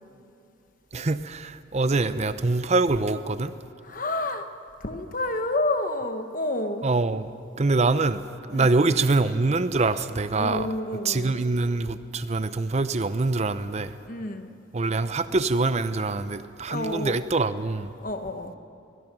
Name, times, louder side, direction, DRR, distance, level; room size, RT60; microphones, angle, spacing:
voice 1, 0.9-3.5 6.8-7.3 7.6-8.2 8.5-10.7 11.0-13.9 14.7-17.9, right 3 dB, 35° right, 13 dB, 0.5 m, -24 dB
voice 2, 3.8-4.5 4.8-6.9 8.5-8.7 10.4-11.3 14.1-14.6 16.3-16.4 16.7-17.2 18.0-18.5, left 2 dB, 45° left, 8 dB, 1.2 m, -29 dB
22.0 x 21.0 x 6.1 m, 2.7 s
head